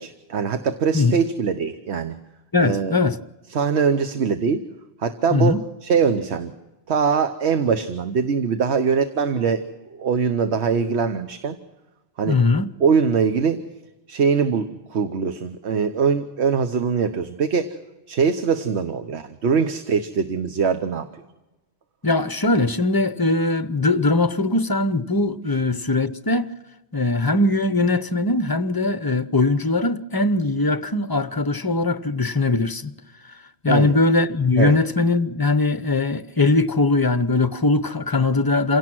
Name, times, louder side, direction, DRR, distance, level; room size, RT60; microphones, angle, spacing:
voice 1, 0.0-2.1 2.6-3.0 3.5-4.6 5.0-6.5 6.9-9.6 9.9-11.6 12.2-12.4 12.8-13.6 14.1-17.7 18.1-21.1 33.7-33.9 34.6-34.8, right 6 dB, 85° right, 1.2 m, -22 dB
voice 2, 2.5-3.2 5.3-5.6 12.3-12.7 22.0-26.5 26.9-32.9 33.6-38.8, left 3 dB, 25° left, 0.6 m, -20 dB
27.5 x 17.0 x 6.1 m
omnidirectional pair, 1.1 m